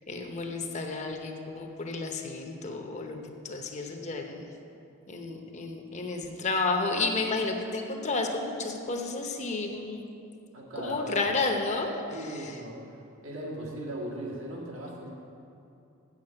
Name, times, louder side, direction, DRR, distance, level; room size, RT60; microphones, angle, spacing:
voice 1, 0.1-3.2 3.4-4.4 5.1-10.0 10.8-12.6, left 3 dB, 35° left, 3 dB, 0.8 m, -31 dB
voice 2, 10.5-11.3 12.1-12.8 13.2-15.1, right 1 dB, 80° right, -4 dB, 2.1 m, -38 dB
7.4 x 7.1 x 7.7 m, 2.7 s
head